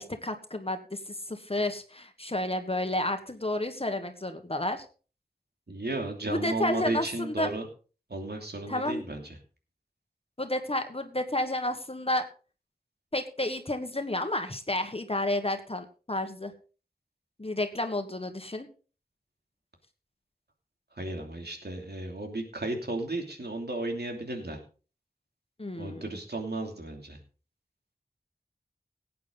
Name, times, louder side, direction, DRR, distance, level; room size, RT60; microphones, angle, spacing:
voice 1, 0.0-4.8 6.2-7.5 8.7-9.0 10.4-12.3 13.1-16.5 17.4-18.7 25.6-26.1, left 1 dB, 35° left, 7 dB, 1.4 m, -31 dB
voice 2, 5.7-7.6 8.1-9.2 21.0-24.6 25.8-27.2, right 2 dB, 80° right, 3 dB, 2.9 m, -34 dB
17.0 x 8.6 x 3.9 m, 0.36 s
wide cardioid pair, 50°, 17 cm